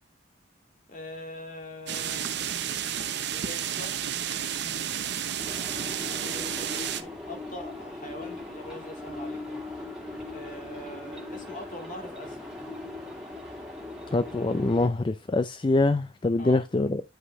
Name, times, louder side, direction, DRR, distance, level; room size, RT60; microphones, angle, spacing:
voice 1, 0.9-2.2 3.3-4.0 6.0-9.6 10.3-12.5 16.4-16.6, left 1 dB, 45° left, 2.2 m, -42 dB
sound 1, 1.9-7.0, right 9 dB, 65° right, 0.8 m, -31 dB
sound 2, 5.4-14.9, left 2 dB, 5° right, 2.4 m, -40 dB
voice 2, 14.1-17.0, left 2 dB, 25° left, 0.4 m, -24 dB
9.8 x 5.0 x 3.2 m
head